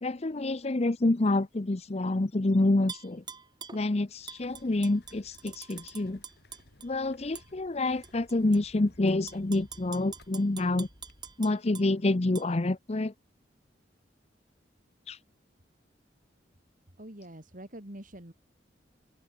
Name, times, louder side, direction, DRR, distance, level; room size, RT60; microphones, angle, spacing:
voice 1, 0.0-3.2 3.7-6.2 6.8-10.9 11.4-13.1 15.1-15.2, left 2 dB, 35° left, 0.7 m, -27 dB
Tap / Glass, 2.9-3.8 4.3-6.9 7.4-7.5 8.0-8.6 9.1-11.9 12.4-12.5, right 6 dB, 25° right, 2.7 m, -45 dB
sound 1, 4.2-11.4, left 1 dB, 60° left, 6.3 m, -58 dB
voice 2, 17.0-18.3, right 1 dB, 45° right, 3.8 m, -45 dB
open air
head